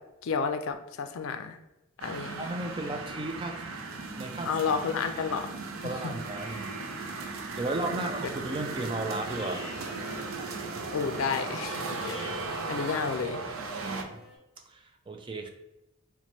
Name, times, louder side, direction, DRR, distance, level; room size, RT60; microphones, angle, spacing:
voice 1, 0.2-1.6 2.0-2.4 4.5-5.5 10.9-12.3 12.7-13.4, left 5 dB, 75° left, 7 dB, 0.4 m, -31 dB
sound 1, 2.0-14.0, right 3 dB, 80° right, 0.5 m, -37 dB
voice 2, 2.4-3.6 4.2-4.6 5.8-6.8 7.2-9.8 10.4-10.5 13.8-14.2 14.7-15.5, right 2 dB, 25° right, 4 dB, 0.3 m, -35 dB
sound 2, 7.9-14.4, equal, ahead, 1.4 m, -47 dB
3.0 x 2.1 x 4.2 m, 0.93 s
head